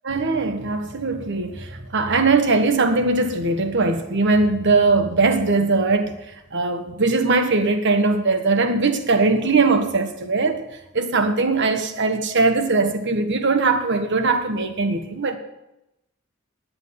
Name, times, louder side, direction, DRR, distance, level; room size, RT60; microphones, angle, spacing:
voice 1, 0.0-6.2 6.5-10.6 10.9-15.4, right 3 dB, 60° right, 1.4 m, -20 dB
10.5 x 7.7 x 9.6 m
head